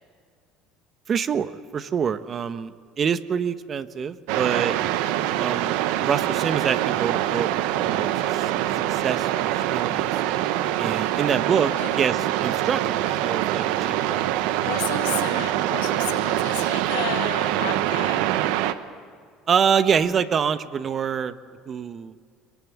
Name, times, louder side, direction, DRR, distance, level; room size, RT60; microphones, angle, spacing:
voice 1, 1.1-4.7 5.3-5.7 6.0-7.5 7.8-8.5 8.9-10.1 10.8-14.3 19.5-21.3 21.7-22.1, right 7 dB, 40° right, 12 dB, 1.2 m, -26 dB
sound 1, 4.3-18.7, right 13 dB, 75° right, 1.0 m, -24 dB
voice 2, 14.6-18.3, left 12 dB, 85° left, 6 dB, 1.9 m, -33 dB
22.5 x 22.0 x 8.7 m, 2.1 s
supercardioid pair, 80°, 0 cm